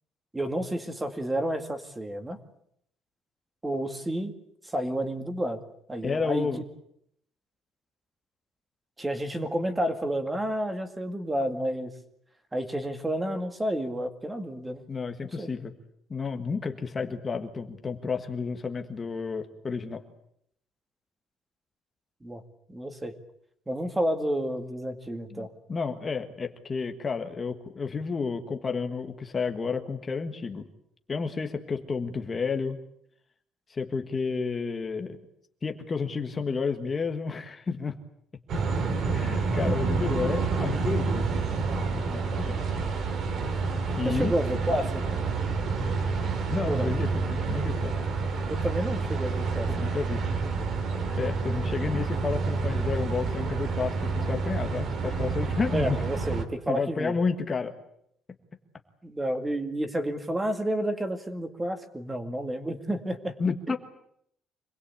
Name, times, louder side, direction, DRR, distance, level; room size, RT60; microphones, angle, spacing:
voice 1, 0.3-2.4 3.6-4.3 4.6-5.6 5.9-6.5 9.0-11.9 12.5-14.8 15.2-15.5 22.2-22.4 22.7-23.1 23.7-25.5 44.0-44.9 46.7-46.9 48.5-49.7 55.7-57.1 59.0-63.4 63.7-63.8, right 1 dB, 10° right, 8 dB, 2.2 m, -30 dB
voice 2, 6.0-6.6 14.9-15.7 16.1-20.0 25.3-30.7 31.1-32.8 33.7-35.2 35.6-38.0 39.1-41.3 42.1-42.6 44.0-44.3 46.5-48.0 49.7-50.2 51.2-56.0 56.7-57.7 63.4-63.8, left 5 dB, 20° left, 6 dB, 1.5 m, -31 dB
sound 1, 38.5-56.4, right 4 dB, 40° right, 2.7 m, -28 dB
26.5 x 20.5 x 8.5 m, 0.72 s
cardioid pair, 170°, 0 cm